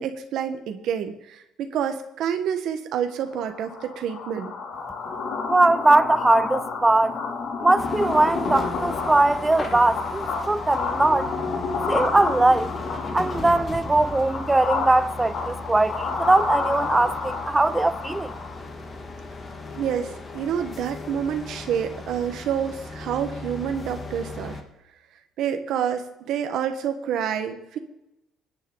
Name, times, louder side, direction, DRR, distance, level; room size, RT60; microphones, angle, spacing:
voice 1, 0.0-4.5 19.8-24.6 25.4-27.8, right 8 dB, 60° right, 1.3 m, -28 dB
sound 1, 3.3-18.7, left 4 dB, 50° left, 2.8 m, -30 dB
voice 2, 5.5-7.2 7.6-11.3 11.9-12.7 13.1-18.3, right 2 dB, 10° right, 0.4 m, -20 dB
sound 2, 7.8-24.6, left 3 dB, 25° left, 1.6 m, -37 dB
25.5 x 9.8 x 4.0 m
cardioid pair, 170°, 0 cm